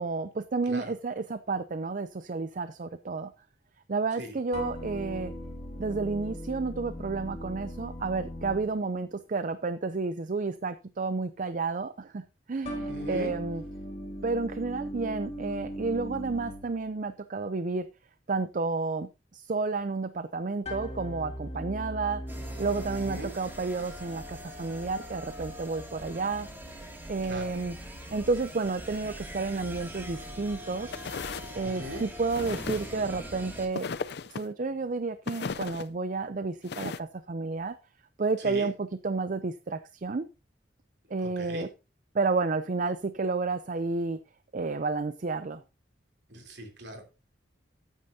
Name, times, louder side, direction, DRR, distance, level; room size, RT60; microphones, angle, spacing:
voice 1, 0.0-3.3 3.9-5.3 5.8-13.6 14.2-17.9 18.3-22.2 22.6-26.5 27.1-27.8 28.1-31.0 31.5-33.9 34.3-37.8 38.2-40.3 41.1-41.7 42.1-44.2 44.5-45.6, right 3 dB, 45° right, 12 dB, 0.5 m, -31 dB
sound 1, 4.5-9.2 12.6-17.0 20.6-23.3, equal, 35° left, 2.5 m, -39 dB
voice 2, 12.9-13.3 22.9-23.3 27.2-27.5 31.6-32.0 38.4-38.7 41.2-41.7 46.3-47.0, equal, 60° right, 3 dB, 3.4 m, -39 dB
sound 2, 22.3-33.7, equal, 10° right, 2.3 m, -42 dB
sound 3, 30.9-31.5 32.3-33.0 33.7-34.5 35.3-35.9 36.6-37.0, left 5 dB, 60° left, 0.5 m, -36 dB
13.0 x 9.0 x 2.7 m, 0.29 s
head